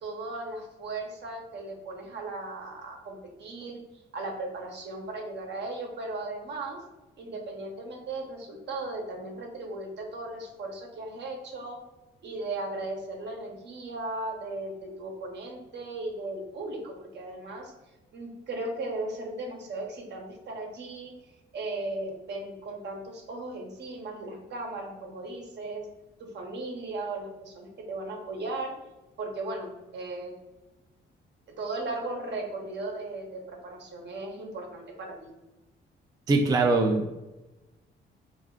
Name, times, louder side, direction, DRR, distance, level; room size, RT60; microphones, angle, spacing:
voice 1, 0.0-3.8 4.1-6.8 7.2-11.8 12.2-17.7 18.1-21.1 21.5-25.9 26.2-28.7 29.2-30.3 31.6-35.3, right 2 dB, 60° right, 1 dB, 0.8 m, -37 dB
voice 2, 36.3-37.2, right 3 dB, 20° right, 2 dB, 0.3 m, -23 dB
2.4 x 2.3 x 3.6 m, 1.0 s
cardioid pair, 90°, 20 cm